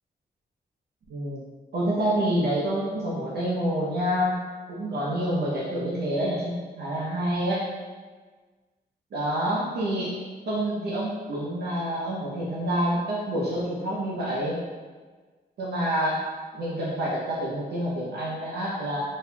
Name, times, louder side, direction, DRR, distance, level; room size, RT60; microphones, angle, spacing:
voice 1, 1.1-1.4 1.7-4.4 4.7-7.6 9.1-10.2 10.5-14.6 15.6-16.2 16.5-19.0, equal, 75° right, -6 dB, 0.7 m, -27 dB
4.2 x 2.7 x 2.2 m, 1.4 s
wide cardioid pair, 170°, 17 cm